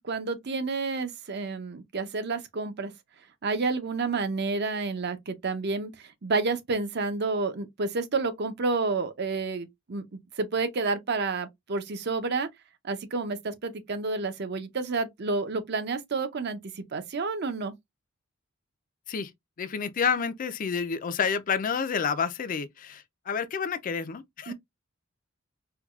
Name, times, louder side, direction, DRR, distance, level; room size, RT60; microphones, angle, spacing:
voice 1, 0.0-2.9 3.4-5.9 6.2-12.5 12.8-17.7 24.5-24.6, right 3 dB, 55° right, 0.6 m, -30 dB
voice 2, 19.6-24.5, left 6 dB, 40° left, 0.4 m, -29 dB
4.6 x 2.2 x 2.3 m
head